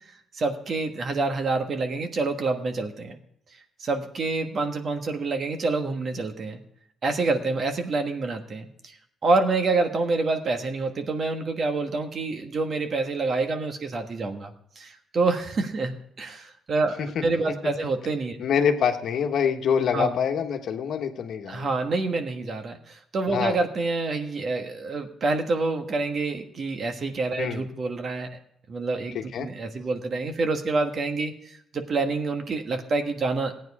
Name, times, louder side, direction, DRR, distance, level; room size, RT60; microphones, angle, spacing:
voice 1, 0.3-3.2 3.8-6.6 7.0-9.0 9.2-16.9 17.2-18.4 19.9-20.1 21.5-28.3 28.7-33.5, right 3 dB, 50° right, 6 dB, 1.5 m, -27 dB
voice 2, 18.4-21.7 23.3-23.5 27.4-27.6 29.1-29.5, left 7 dB, 70° left, 5 dB, 1.2 m, -25 dB
15.0 x 9.3 x 4.8 m, 0.71 s
cardioid pair, 90°, 0 cm